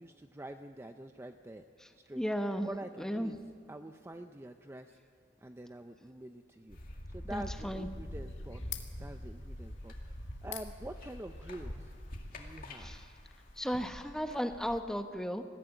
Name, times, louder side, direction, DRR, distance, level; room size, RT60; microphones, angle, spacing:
voice 1, 0.0-1.6 2.0-2.2 2.6-3.4 3.7-5.0 5.4-11.9 12.3-12.9, right 1 dB, 15° right, 7 dB, 0.5 m, -46 dB
voice 2, 2.2-2.7 3.0-3.3 7.3-7.9 12.8-13.0 13.6-15.4, equal, 5° left, 7 dB, 0.9 m, -34 dB
sound 1, 6.7-14.8, left 1 dB, 50° left, 2.2 m, -45 dB
sound 2, 7.4-13.9, left 11 dB, 70° left, 1.8 m, -51 dB
20.5 x 15.0 x 9.0 m, 2.4 s
head